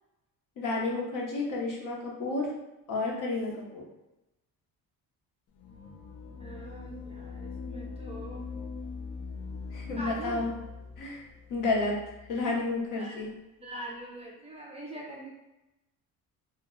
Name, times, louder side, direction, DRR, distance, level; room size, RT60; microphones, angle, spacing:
voice 1, 0.6-2.5 2.9-3.8 9.7-10.5 11.0-11.2 11.5-12.0 12.3-13.3, left 3 dB, 60° left, -1 dB, 0.8 m, -31 dB
sound 1, 5.5-12.7, left 4 dB, 45° left, 0.4 m, -42 dB
voice 2, 6.4-8.5 9.9-10.5 13.0-13.2 13.6-15.3, right 1 dB, 20° right, -3 dB, 0.4 m, -42 dB
2.2 x 2.1 x 3.5 m, 0.98 s
cardioid pair, 110°, 36 cm